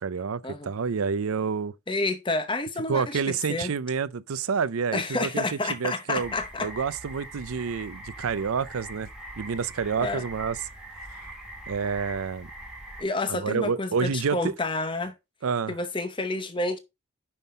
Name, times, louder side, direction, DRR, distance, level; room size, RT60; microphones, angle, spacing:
voice 1, 0.0-1.7 2.9-6.3 6.6-9.1 9.4-10.6 11.7-12.5 13.3-14.5 15.4-15.8, right 5 dB, 85° right, 0.5 m, -28 dB
voice 2, 1.9-3.7 4.9-6.7 10.0-10.2 13.0-15.1 15.7-16.8, left 2 dB, 25° left, 0.9 m, -29 dB
sound 1, 6.1-13.0, right 1 dB, 5° right, 1.6 m, -42 dB
5.9 x 5.4 x 5.4 m
head